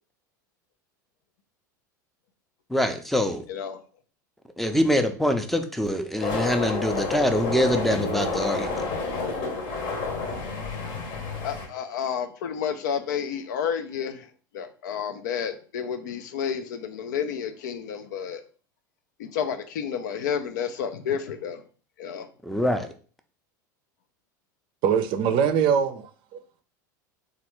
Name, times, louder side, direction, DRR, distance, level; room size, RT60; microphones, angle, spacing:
voice 1, 2.7-3.4 4.6-8.8 22.4-22.9, equal, ahead, 0.5 m, -24 dB
voice 2, 3.5-3.8 11.4-14.3 14.5-18.4 19.2-21.6 22.0-22.3, left 7 dB, 75° left, 0.4 m, -30 dB
sound 1, 6.2-11.7, left 3 dB, 50° left, 0.9 m, -29 dB
voice 3, 24.8-26.4, right 7 dB, 55° right, 0.5 m, -23 dB
3.2 x 2.4 x 3.0 m
hypercardioid pair, 90°, 10 cm